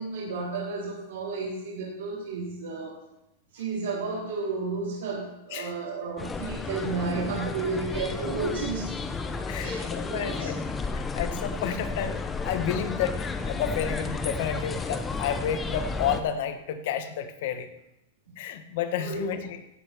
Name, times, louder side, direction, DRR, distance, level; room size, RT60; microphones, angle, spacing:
voice 1, 0.0-2.9 3.5-8.9 9.6-9.8 10.1-10.5 18.3-18.4 19.0-19.2, right 4 dB, 90° right, -6 dB, 4.0 m, -32 dB
sound 1, 6.2-16.2, left 4 dB, 15° left, 0.9 m, -32 dB
voice 2, 9.5-10.6 10.9-17.7 18.4-19.6, left 8 dB, 60° left, 8 dB, 1.4 m, -31 dB
16.0 x 5.5 x 6.2 m, 0.86 s
supercardioid pair, 140°, 0 cm